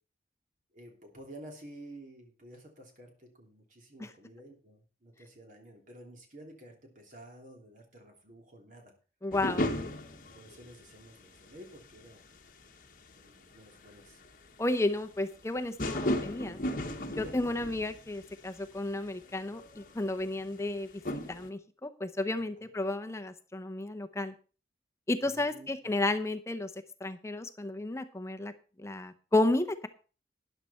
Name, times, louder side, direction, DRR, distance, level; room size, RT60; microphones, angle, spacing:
voice 1, 0.7-8.9 9.7-9.9 10.3-12.2 13.1-14.2 17.2-17.5 22.6-22.7 25.2-25.7, right 1 dB, 45° right, 2 dB, 3.1 m, -51 dB
voice 2, 9.2-9.7 14.6-16.6 17.2-20.9 21.3-24.3 25.1-26.7 27.0-28.5 28.8-29.9, left 2 dB, 15° left, 8 dB, 0.7 m, -32 dB
sound 1, 9.3-11.2 11.5-11.9 12.7-12.9 13.1-13.2 13.4-13.5 14.0-14.1 14.2-14.3 15.8-18.3 18.6-18.8 19.1-20.7 21.0-21.5, left 1 dB, 50° left, 1.3 m, -35 dB
12.5 x 10.5 x 4.3 m, 0.36 s
head